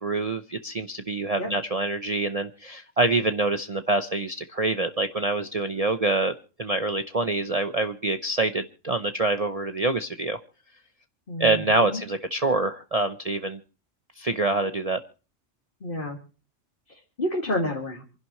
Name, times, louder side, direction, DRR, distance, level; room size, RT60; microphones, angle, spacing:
voice 1, 0.0-6.3 6.6-10.4 11.4-13.6 14.2-15.0, right 2 dB, 35° right, 7 dB, 0.7 m, -26 dB
voice 2, 11.3-12.0 15.8-16.2 16.9-18.0, left 1 dB, 45° left, -1 dB, 2.3 m, -30 dB
27.5 x 11.0 x 3.1 m, 0.36 s
omnidirectional pair, 1.3 m